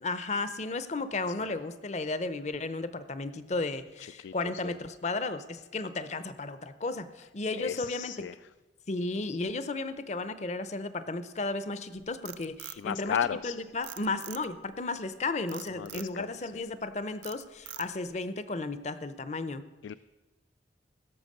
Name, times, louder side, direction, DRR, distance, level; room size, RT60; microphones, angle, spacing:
voice 1, 0.0-8.2 8.9-13.2 13.4-19.6, left 3 dB, 40° left, 13 dB, 0.6 m, -34 dB
voice 2, 4.0-4.8 7.6-8.4 12.7-13.6 15.8-16.5 19.8-19.9, left 8 dB, 80° left, 14 dB, 0.3 m, -35 dB
Frog, 11.9-13.5 13.8-14.7 15.5-16.1 16.6-16.9 17.2-18.1, right 14 dB, 70° right, 0.5 m, -44 dB
16.5 x 6.9 x 6.6 m, 1.1 s
head